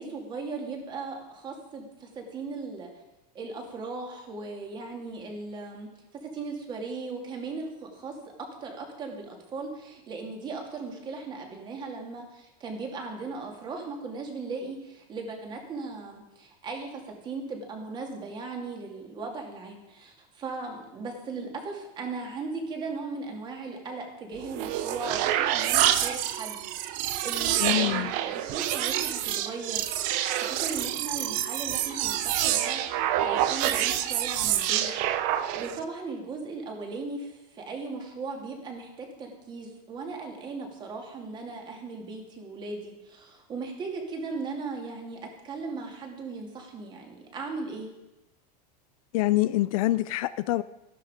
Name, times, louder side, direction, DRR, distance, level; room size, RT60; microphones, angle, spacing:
voice 1, 0.0-2.9 3.3-45.2 45.4-47.9, right 3 dB, 20° right, 2 dB, 2.5 m, -38 dB
sound 1, 24.4-35.8, right 12 dB, 40° right, 0.8 m, -27 dB
voice 2, 27.6-28.1 49.1-50.6, left 17 dB, 55° left, 15 dB, 0.5 m, -25 dB
13.5 x 12.5 x 5.0 m, 0.99 s
supercardioid pair, 165°, 21 cm